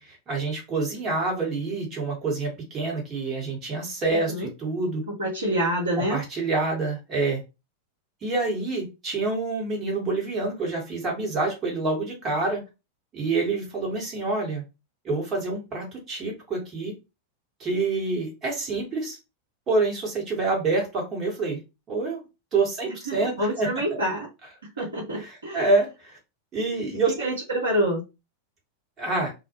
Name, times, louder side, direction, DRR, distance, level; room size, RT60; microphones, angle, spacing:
voice 1, 0.0-5.0 6.0-7.4 8.2-12.6 13.1-14.6 15.0-16.9 17.6-19.2 19.7-21.6 21.9-22.2 22.5-24.0 24.8-24.9 25.1-26.2 26.5-27.3 29.0-29.3, right 3 dB, 30° right, -1 dB, 1.2 m, -27 dB
voice 2, 5.1-6.2 22.9-24.3 24.8-25.7 27.2-28.0, right 1 dB, 70° right, -4 dB, 0.8 m, -27 dB
2.2 x 2.1 x 2.8 m, 0.26 s
figure-of-eight pair, 90°, 0 cm